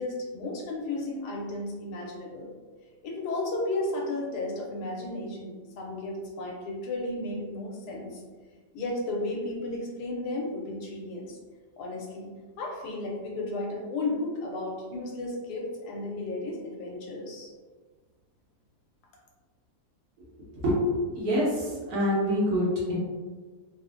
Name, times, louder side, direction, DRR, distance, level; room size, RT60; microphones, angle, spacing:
voice 1, 0.0-2.5 3.0-8.2 8.7-11.4 11.8-17.5, left 2 dB, 75° left, -2 dB, 1.1 m, -34 dB
voice 2, 20.5-23.0, equal, 70° right, -5 dB, 1.3 m, -26 dB
3.2 x 2.1 x 2.4 m, 1.4 s
omnidirectional pair, 1.8 m